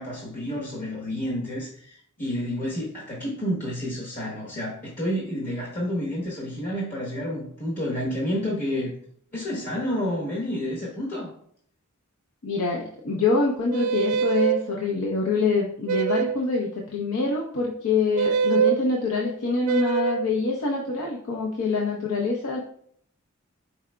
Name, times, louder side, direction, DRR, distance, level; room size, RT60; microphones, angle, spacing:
voice 1, 0.0-8.9 9.3-11.3, equal, 40° left, -4 dB, 1.0 m, -30 dB
voice 2, 12.4-22.6, left 4 dB, 85° left, -2 dB, 0.7 m, -25 dB
sound 1, 13.7-14.6 15.9-16.5 18.2-18.8 19.6-20.3, right 7 dB, 90° right, 0.4 m, -23 dB
4.8 x 4.7 x 2.2 m, 0.64 s
head